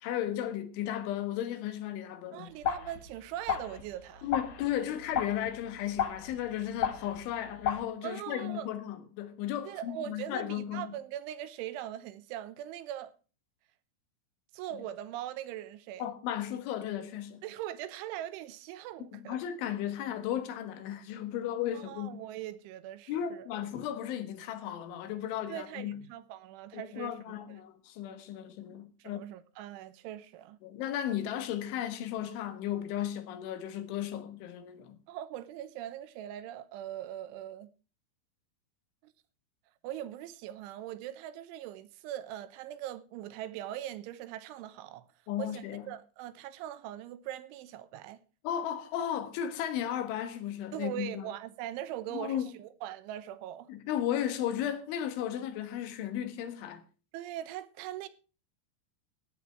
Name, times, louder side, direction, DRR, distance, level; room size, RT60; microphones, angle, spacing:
voice 1, 0.0-2.5 4.2-10.9 16.0-17.4 19.1-22.2 23.1-26.0 26.7-29.2 30.6-35.0 45.3-45.9 48.4-51.3 52.1-52.5 53.7-56.8, left 10 dB, 80° left, 3.8 m, -35 dB
voice 2, 2.3-4.3 8.0-8.7 9.7-13.1 14.5-16.1 17.4-19.4 21.7-23.5 25.5-27.4 29.0-30.6 35.1-37.7 39.0-39.1 39.8-45.1 45.4-48.2 50.7-53.7 57.1-58.1, right 12 dB, 80° right, 3.3 m, -41 dB
sound 1, 2.6-7.8, left 8 dB, 60° left, 1.9 m, -35 dB
14.5 x 10.0 x 4.4 m
omnidirectional pair, 5.5 m